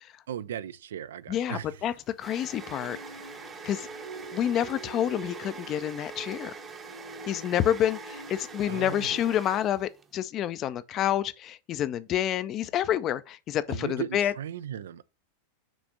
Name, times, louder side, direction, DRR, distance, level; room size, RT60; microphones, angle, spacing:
voice 1, 0.3-1.8 8.7-9.3 13.7-15.0, right 10 dB, 60° right, 0.3 m, -37 dB
voice 2, 1.3-3.0 3.6-3.9 4.3-6.5 7.3-14.3, left 11 dB, 30° left, 0.5 m, -28 dB
sound 1, 1.4-10.1, right 5 dB, 20° right, 0.8 m, -44 dB
sound 2, 2.6-9.4, right 2 dB, 80° right, 1.9 m, -46 dB
6.2 x 3.4 x 5.1 m
figure-of-eight pair, 90°, 0 cm